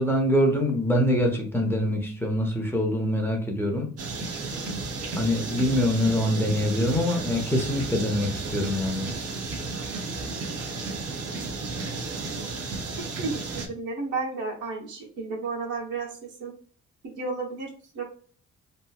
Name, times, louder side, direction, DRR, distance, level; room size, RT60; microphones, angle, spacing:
voice 1, 0.0-3.9 5.2-9.1, equal, 5° left, 1 dB, 0.7 m, -24 dB
sound 1, 4.0-13.7, right 3 dB, 55° right, 0.7 m, -33 dB
voice 2, 13.2-16.5 17.2-18.0, right 4 dB, 75° right, -1 dB, 1.1 m, -32 dB
2.9 x 2.5 x 2.3 m, 0.42 s
cardioid pair, 90°, 30 cm